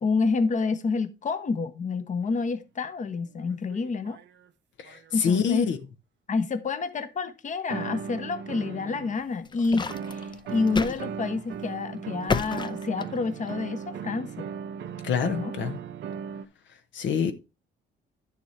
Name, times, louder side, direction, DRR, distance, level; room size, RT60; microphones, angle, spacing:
voice 1, 0.0-4.2 5.1-5.7 6.3-14.5 15.3-15.5, left 4 dB, 40° left, 0.9 m, -28 dB
sound 1, 2.2-2.3 3.4-4.5 4.8-5.8 7.7-9.2 9.9-16.4, right 7 dB, 65° right, 0.7 m, -38 dB
voice 2, 4.9-5.8 15.0-15.8 16.9-17.3, left 7 dB, 70° left, 0.9 m, -26 dB
sound 2, 9.2-11.0 11.4-11.6 12.3-13.5, left 4 dB, 25° left, 0.5 m, -30 dB
9.7 x 6.8 x 3.2 m
cardioid pair, 90°, 20 cm